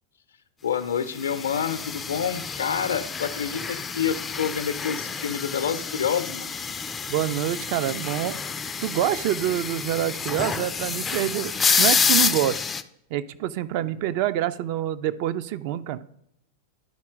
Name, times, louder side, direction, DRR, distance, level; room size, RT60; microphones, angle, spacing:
voice 1, 0.6-6.5, left 8 dB, 70° left, 11 dB, 0.6 m, -28 dB
sound 1, 1.2-12.8, left 5 dB, 20° left, 0.4 m, -28 dB
voice 2, 7.1-8.4 8.8-12.6 13.1-16.0, right 12 dB, 45° right, 12 dB, 0.4 m, -26 dB
11.0 x 4.3 x 3.6 m, 0.75 s
figure-of-eight pair, 90°, 0 cm